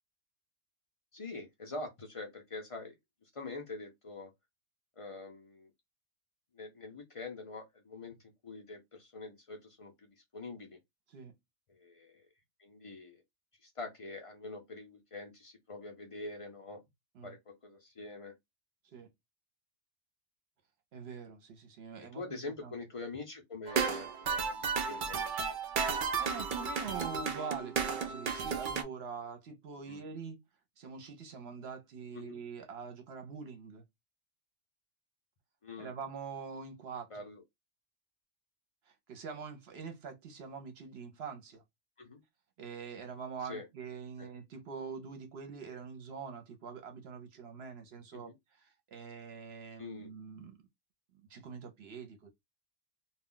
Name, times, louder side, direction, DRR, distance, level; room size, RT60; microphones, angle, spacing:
voice 1, 1.1-3.0 3.3-4.3 5.0-5.7 6.5-8.1 8.4-10.8 11.7-12.3 12.6-13.2 13.6-16.8 17.2-18.3 22.1-25.6 29.9-30.0 32.1-32.4 35.6-35.9 37.1-37.4 42.0-42.2 43.5-43.7 44.2-44.3 48.1-48.3 49.8-50.1, left 3 dB, 50° left, 0.3 m, -45 dB
voice 2, 20.9-22.7 26.2-30.4 30.8-33.8 35.8-37.1 38.9-41.6 42.6-50.6 51.3-52.3, right 5 dB, 60° right, 0.8 m, -44 dB
sound 1, 23.7-28.8, right 6 dB, 75° right, 0.4 m, -33 dB
2.3 x 2.3 x 3.6 m
omnidirectional pair, 1.4 m